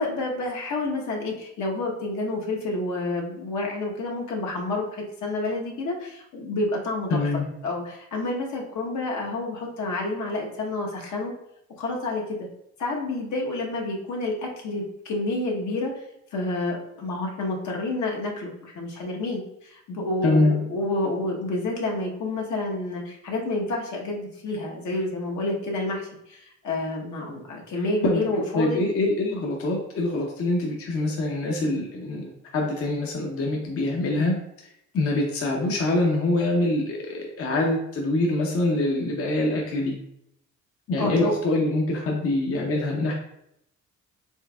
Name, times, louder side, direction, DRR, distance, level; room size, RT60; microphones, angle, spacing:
voice 1, 0.0-7.2 7.6-11.3 11.8-12.2 12.8-15.9 16.3-28.8 34.1-34.4 41.0-41.3, left 2 dB, 70° left, -1 dB, 1.0 m, -29 dB
voice 2, 7.1-7.5 20.2-20.6 28.0-34.4 34.6-40.0 40.9-43.1, left 2 dB, 50° left, 0 dB, 0.7 m, -24 dB
4.5 x 3.3 x 2.3 m, 0.77 s
cardioid pair, 90°, 30 cm